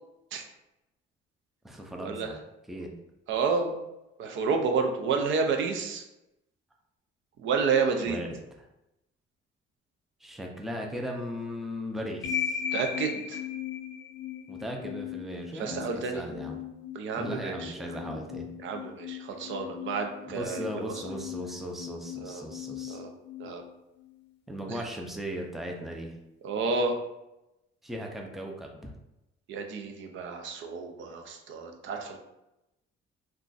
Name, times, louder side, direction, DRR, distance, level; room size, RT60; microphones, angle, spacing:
voice 1, 1.6-2.4 2.7-2.9 7.8-8.7 10.2-12.6 14.5-16.6 17.2-18.5 20.3-23.0 24.5-26.1 27.8-28.9, equal, ahead, 1 dB, 0.4 m, -37 dB
voice 2, 3.3-3.8 4.2-6.0 7.4-8.2 12.7-13.4 15.6-16.2 16.9-17.7 18.6-20.7 22.2-22.4 22.9-23.1 23.4-23.6 24.7-24.8 26.4-27.0 29.5-32.2, right 4 dB, 65° right, 4 dB, 0.5 m, -30 dB
sound 1, 12.2-24.3, left 9 dB, 60° left, 0.5 m, -38 dB
2.4 x 2.3 x 3.9 m, 0.91 s
cardioid pair, 120°, 21 cm